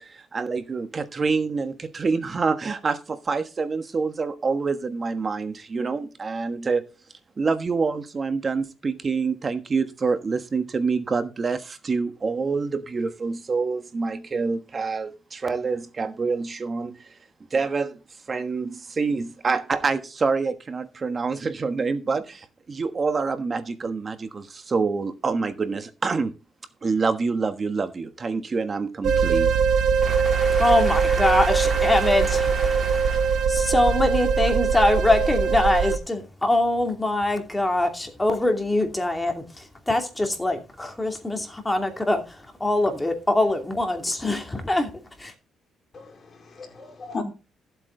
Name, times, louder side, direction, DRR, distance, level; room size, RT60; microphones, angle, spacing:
voice 1, 0.0-6.9 7.4-17.1 17.5-18.0 18.3-26.3 26.8-29.6, right 4 dB, 35° right, 1.3 m, -26 dB
sound 1, 29.0-36.0, right 6 dB, 70° right, 1.4 m, -22 dB
voice 2, 30.0-44.9 45.2-45.3, left 1 dB, 15° left, 2.6 m, -23 dB
voice 3, 45.9-47.2, left 3 dB, 40° left, 4.4 m, -36 dB
14.0 x 8.1 x 3.9 m
cardioid pair, 90°, 0 cm